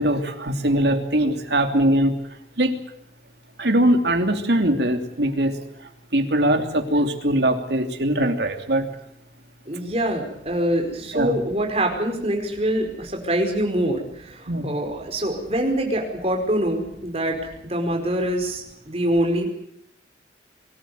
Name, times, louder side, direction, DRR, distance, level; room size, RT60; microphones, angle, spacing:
voice 1, 0.0-2.1 2.6-2.8 3.6-5.6 6.1-8.9 11.1-11.4 14.5-14.7, right 1 dB, 75° right, 5 dB, 3.0 m, -21 dB
voice 2, 9.7-17.4 17.6-19.5, right 1 dB, 35° right, 3 dB, 4.9 m, -24 dB
24.0 x 14.5 x 9.4 m, 0.74 s
head